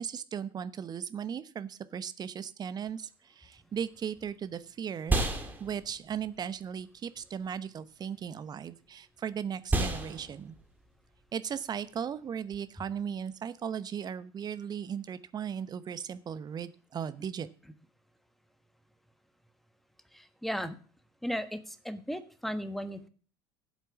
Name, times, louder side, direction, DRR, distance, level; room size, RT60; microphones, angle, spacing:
voice 1, 0.0-5.2 5.6-10.5 11.3-17.5, right 8 dB, 30° right, 14 dB, 0.9 m, -37 dB
sound 1, 3.7-13.3, right 2 dB, 15° right, 2.6 m, -36 dB
voice 2, 20.1-20.7 21.2-23.1, equal, ahead, 11 dB, 1.3 m, -35 dB
12.0 x 8.1 x 6.2 m, 0.42 s
figure-of-eight pair, 65°, 13 cm